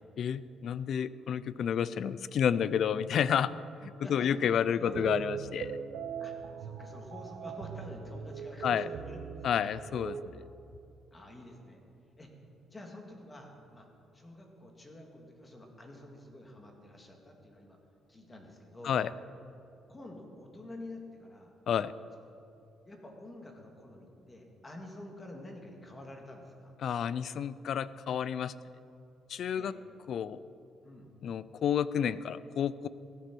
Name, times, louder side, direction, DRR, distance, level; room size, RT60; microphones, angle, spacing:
voice 1, 0.2-3.5 3.8-5.8 8.6-8.9 9.4-10.4 18.8-19.1 21.7-21.9 26.8-28.5 29.3-29.7 30.1-30.4 31.2-32.9, left 8 dB, 60° left, 17 dB, 0.4 m, -30 dB
voice 2, 4.0-4.3 4.7-5.1 6.2-6.3 6.6-9.7 11.1-11.8 12.2-12.3 12.7-13.9 14.1-17.8 18.1-19.0 19.9-21.5 22.9-26.7 29.5-29.7 30.8-31.1, left 1 dB, 20° left, 2 dB, 2.1 m, -48 dB
sound 1, 4.9-10.3, right 7 dB, 80° right, 0.7 m, -40 dB
15.0 x 8.6 x 6.2 m, 2.6 s
cardioid pair, 105°, 0 cm